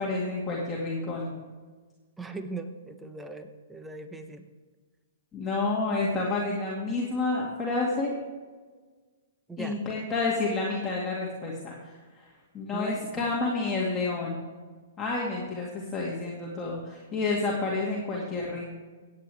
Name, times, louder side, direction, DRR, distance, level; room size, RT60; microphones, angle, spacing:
voice 1, 0.0-1.3 5.3-8.1 9.6-11.9 12.5-14.5 15.0-18.7, left 3 dB, 15° left, -5 dB, 2.1 m, -29 dB
voice 2, 2.2-4.5 9.5-9.8 12.7-13.0, right 3 dB, 5° right, 8 dB, 0.9 m, -39 dB
16.5 x 8.7 x 3.4 m, 1.4 s
hypercardioid pair, 135°, 0 cm